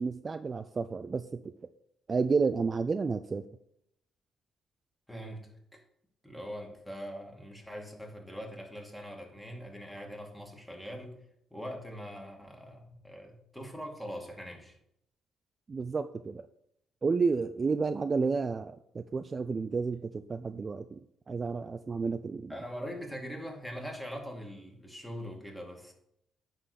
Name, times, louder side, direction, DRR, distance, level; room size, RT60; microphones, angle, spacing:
voice 1, 0.0-1.4 2.1-3.4 15.7-16.4 17.0-21.0 21.3-22.5, right 4 dB, 35° right, 10 dB, 0.4 m, -31 dB
voice 2, 5.1-5.8 6.2-11.2 11.5-14.8 22.5-25.9, equal, 5° left, 1 dB, 2.2 m, -42 dB
9.6 x 3.9 x 6.7 m, 0.76 s
cardioid pair, 90°, 0 cm